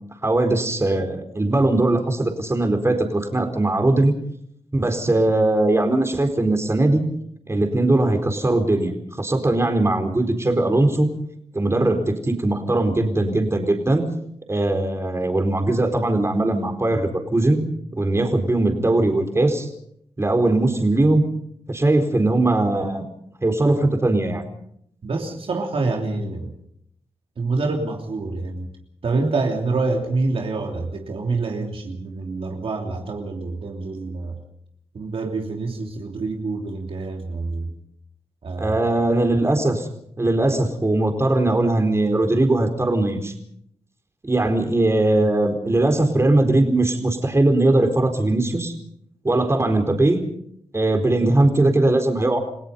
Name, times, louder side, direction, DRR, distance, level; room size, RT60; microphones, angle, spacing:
voice 1, 0.2-4.1 4.7-7.0 7.5-11.1 11.5-14.0 14.5-17.6 18.0-19.7 20.2-21.2 21.7-23.1 23.4-24.4 38.6-39.9 40.2-43.3 44.2-48.7 49.2-50.2 50.7-52.4, right 2 dB, 25° right, 5 dB, 4.3 m, -20 dB
voice 2, 25.0-26.5 27.4-28.7 29.0-34.4 34.9-37.7 38.4-38.9, right 3 dB, 60° right, 2 dB, 3.1 m, -26 dB
29.5 x 17.0 x 5.5 m, 0.70 s
cardioid pair, 65°, 10 cm